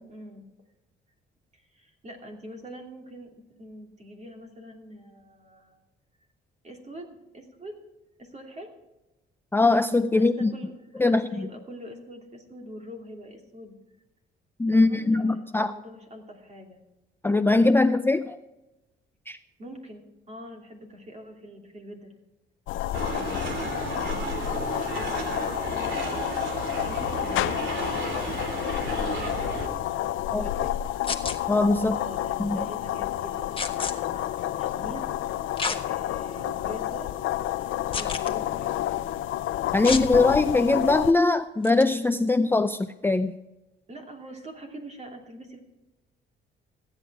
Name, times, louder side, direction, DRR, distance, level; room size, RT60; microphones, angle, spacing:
voice 1, 0.1-0.4 1.5-5.8 6.6-7.7 8.2-8.7 10.1-13.8 14.7-16.8 19.6-22.1 22.9-30.7 31.8-35.1 35.9-37.1 37.5-37.6 37.9-39.1 40.0-40.2 43.9-45.6, equal, 35° right, 2 dB, 2.9 m, -44 dB
voice 2, 9.5-10.5 11.0-11.3 14.6-15.7 17.2-18.4 19.3-19.4 30.3-30.4 31.5-32.0 32.4-32.6 39.7-43.4, left 3 dB, 10° left, 10 dB, 0.4 m, -21 dB
sound 1, 22.7-41.1, left 13 dB, 85° left, 0.6 m, -30 dB
sound 2, 22.9-29.7, right 3 dB, 70° right, 2.9 m, -33 dB
sound 3, 31.0-31.4 33.6-33.9 35.6-35.8 36.4-36.5 37.9-38.3 39.8-40.1 41.6-41.8, left 4 dB, 25° left, 1.3 m, -30 dB
15.0 x 9.1 x 4.8 m, 1.0 s
cardioid pair, 90°, 20 cm